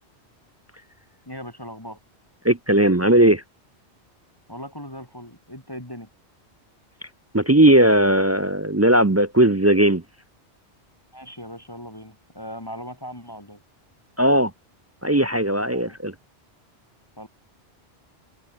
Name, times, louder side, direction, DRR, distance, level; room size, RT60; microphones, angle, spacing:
voice 1, 1.3-2.0 4.5-6.1 11.1-13.6 15.7-16.0 17.2-17.3, equal, 20° left, 4.4 m, -38 dB
voice 2, 2.4-3.4 7.3-10.0 14.2-14.5 15.0-16.1, right 1 dB, 20° right, 0.4 m, -17 dB
open air
omnidirectional pair, 1.1 m